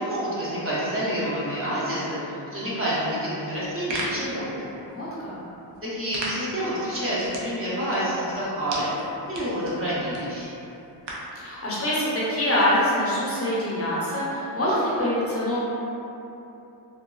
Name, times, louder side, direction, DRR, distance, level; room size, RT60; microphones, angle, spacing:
voice 1, 0.0-4.7 5.8-8.9 9.3-10.5, equal, 30° right, -9 dB, 0.6 m, -28 dB
sound 1, 3.5-11.4, right 1 dB, 80° right, 0.6 m, -38 dB
voice 2, 4.8-5.3 11.3-15.6, left 1 dB, 35° left, -8 dB, 0.5 m, -25 dB
3.0 x 2.2 x 2.3 m, 2.9 s
wide cardioid pair, 130°, 43 cm